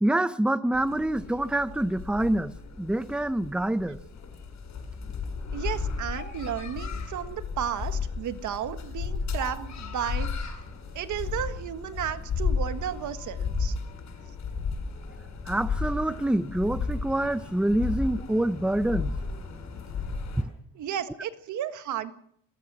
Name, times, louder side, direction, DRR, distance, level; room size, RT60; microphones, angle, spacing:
voice 1, 0.0-4.0 15.5-19.1 20.4-20.5, right 1 dB, 5° right, 0.8 m, -26 dB
sound 1, 0.7-20.4, left 5 dB, 65° left, 7.8 m, -34 dB
voice 2, 5.5-10.6 10.9-13.7 20.7-22.1, right 9 dB, 75° right, 1.7 m, -33 dB
21.5 x 19.0 x 6.3 m
cardioid pair, 90°, 30 cm